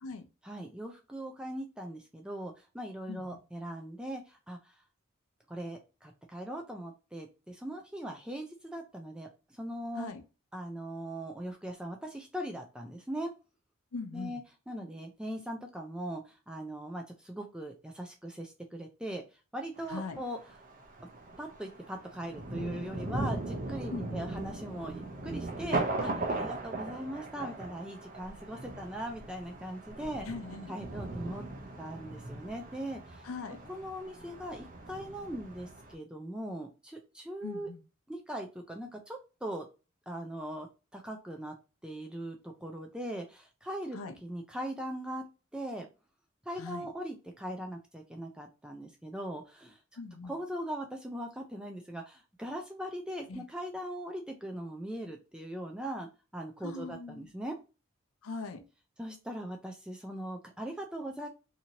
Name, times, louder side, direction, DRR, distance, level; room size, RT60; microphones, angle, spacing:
voice 1, 0.4-4.7 5.5-10.1 10.5-13.3 14.1-14.4 14.7-19.2 19.5-20.4 21.4-30.3 30.7-31.4 31.8-33.2 33.7-37.7 38.1-39.7 40.1-40.7 40.9-41.5 41.8-45.2 45.5-45.9 46.5-49.8 50.3-57.6 59.0-61.3, right 1 dB, 5° right, 2 dB, 0.3 m, -40 dB
voice 2, 3.1-3.4 10.0-10.2 13.9-14.4 19.9-20.2 23.9-24.3 30.2-30.7 33.2-33.6 37.4-37.8 43.9-44.1 46.6-46.9 50.0-50.4 53.3-53.5 56.6-57.3 58.2-58.6, left 4 dB, 85° left, 8 dB, 0.5 m, -41 dB
Thunder, 19.8-35.9, right 2 dB, 40° right, 0.6 m, -39 dB
2.9 x 2.6 x 2.7 m, 0.31 s
head